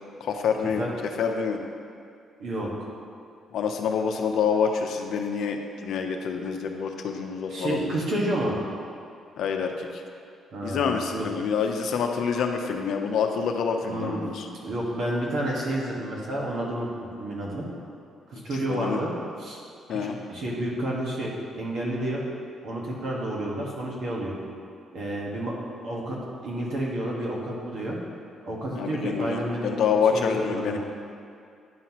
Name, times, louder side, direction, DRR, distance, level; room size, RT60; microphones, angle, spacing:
voice 1, 0.2-0.9 1.2-1.6 3.5-8.0 9.4-10.0 10.6-14.5 18.7-19.0 19.9-20.2 28.7-30.8, left 6 dB, 75° left, 4 dB, 0.6 m, -27 dB
voice 2, 2.4-2.9 7.5-8.5 10.5-11.3 13.9-14.2 14.6-17.7 18.3-19.1 19.4-19.6 19.9-22.3 22.6-24.3 24.9-25.5 25.8-28.0 28.4-29.7 30.1-30.8, right 1 dB, 70° right, -3 dB, 1.5 m, -30 dB
10.0 x 5.6 x 3.0 m, 2.4 s
cardioid pair, 100°, 0 cm